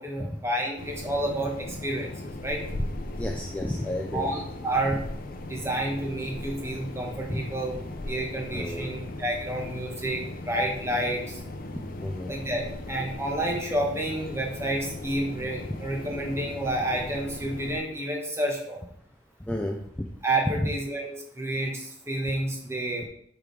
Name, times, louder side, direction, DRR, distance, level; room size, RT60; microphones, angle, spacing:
voice 1, 0.0-2.6 4.1-5.0 5.5-7.8 8.1-11.4 12.3-12.6 12.9-18.8 20.2-23.1, right 1 dB, 15° right, 0 dB, 1.4 m, -30 dB
sound 1, 0.8-17.8, left 1 dB, 50° left, 0.7 m, -38 dB
voice 2, 3.2-4.3 7.3-7.4 8.5-8.9 11.7-12.3 19.5-19.8, left 1 dB, 10° left, 1 dB, 0.5 m, -32 dB
8.8 x 4.8 x 3.4 m, 0.69 s
head